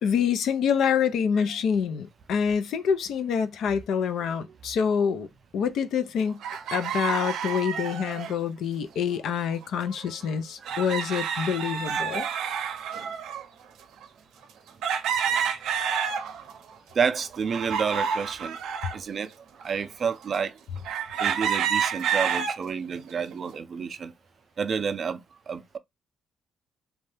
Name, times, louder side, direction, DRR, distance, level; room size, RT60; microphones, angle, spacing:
voice 1, 0.0-5.3 5.5-6.4 6.7-12.3, left 7 dB, 75° left, 0.5 m, -26 dB
sound 1, 6.4-8.3 9.5-9.6 9.9-10.0 10.7-13.5 14.0-14.1 14.8-16.6 17.0-19.0 19.6-19.7 20.9-22.6 23.1-23.5, right 7 dB, 85° right, 0.6 m, -29 dB
voice 2, 10.6-10.9 16.9-18.6 18.9-20.6 21.2-24.1 24.6-25.8, right 6 dB, 40° right, 0.4 m, -30 dB
2.7 x 2.2 x 3.3 m
cardioid pair, 135°, 0 cm